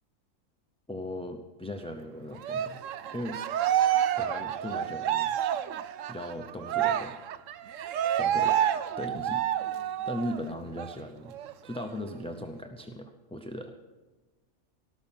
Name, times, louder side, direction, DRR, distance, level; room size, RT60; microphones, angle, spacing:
voice 1, 0.9-2.8 3.1-3.4 4.2-5.4 6.1-7.2 8.2-9.4 10.1-11.3 11.6-13.7, left 1 dB, 5° left, 5 dB, 0.5 m, -38 dB
Cheering, 2.4-10.4 10.8-10.9 11.3-12.3, right 10 dB, 75° right, 1.0 m, -29 dB
18.5 x 6.2 x 8.8 m, 1.2 s
omnidirectional pair, 1.4 m